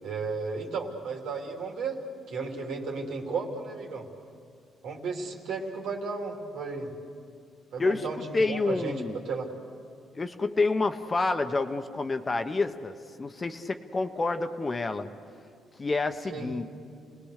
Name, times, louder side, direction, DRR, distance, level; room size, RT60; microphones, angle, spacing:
voice 1, 0.0-2.0 2.3-4.1 4.8-6.9 7.7-9.5 16.3-16.5, right 4 dB, 80° right, 0 dB, 3.2 m, -34 dB
voice 2, 7.8-9.2 10.1-15.1 15.8-16.6, left 3 dB, 30° left, 8 dB, 1.1 m, -28 dB
29.5 x 19.5 x 6.7 m, 2.3 s
cardioid pair, 90°, 0 cm